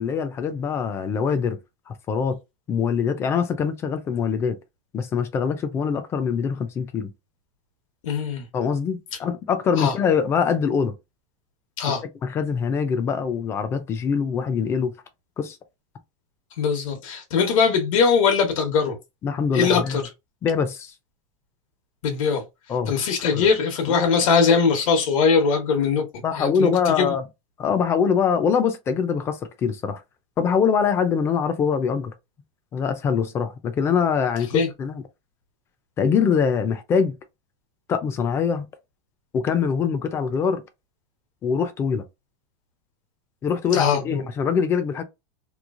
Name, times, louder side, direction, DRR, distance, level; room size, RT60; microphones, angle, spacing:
voice 1, 0.0-1.6 1.9-2.4 2.7-4.6 4.9-7.1 8.5-10.9 12.2-14.9 15.4-15.6 19.2-20.0 20.4-20.9 22.7-22.9 23.3-23.5 23.9-24.1 26.2-27.2 27.6-30.0 30.4-32.1 32.7-35.0 36.0-37.1 37.9-38.7 39.3-40.6 41.4-42.0 43.4-45.0, left 6 dB, 15° left, 0.3 m, -23 dB
voice 2, 8.0-8.4 9.8-9.9 11.8-12.0 16.6-18.9 19.5-20.0 22.0-22.4 22.9-26.0 26.4-27.1 34.5-34.7 43.7-44.3, left 5 dB, 85° left, 1.1 m, -21 dB
3.1 x 2.3 x 2.4 m
supercardioid pair, 170°, 17 cm